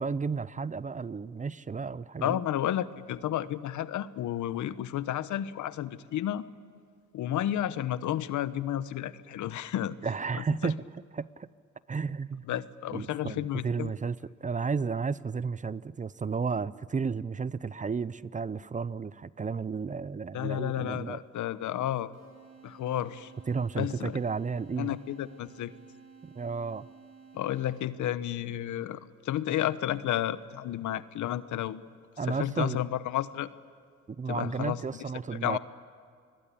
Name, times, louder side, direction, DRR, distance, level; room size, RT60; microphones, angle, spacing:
voice 1, 0.0-2.4 10.0-10.8 11.1-11.5 11.9-12.4 12.9-21.2 23.5-25.0 26.4-26.9 32.2-32.9 34.2-35.6, right 5 dB, 25° right, 18 dB, 0.6 m, -33 dB
voice 2, 2.2-6.5 7.1-10.0 10.3-10.7 12.5-13.9 20.3-22.1 22.6-23.3 23.8-24.2 24.8-25.7 27.3-31.9 32.3-33.5 34.3-34.8 35.3-35.6, left 12 dB, 75° left, 15 dB, 1.1 m, -32 dB
sound 1, 22.1-28.2, right 6 dB, 55° right, 7.3 m, -53 dB
29.0 x 21.0 x 8.6 m, 2.2 s
cardioid pair, 90°, 30 cm